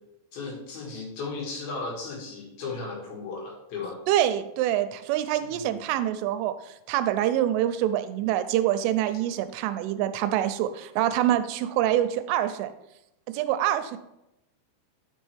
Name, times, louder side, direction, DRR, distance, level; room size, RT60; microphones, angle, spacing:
voice 1, 0.3-4.0 5.3-5.8, left 3 dB, 60° left, -2 dB, 3.2 m, -36 dB
voice 2, 4.1-12.7 13.3-14.0, right 12 dB, 90° right, 10 dB, 3.1 m, -25 dB
9.6 x 5.4 x 3.4 m, 0.87 s
omnidirectional pair, 5.6 m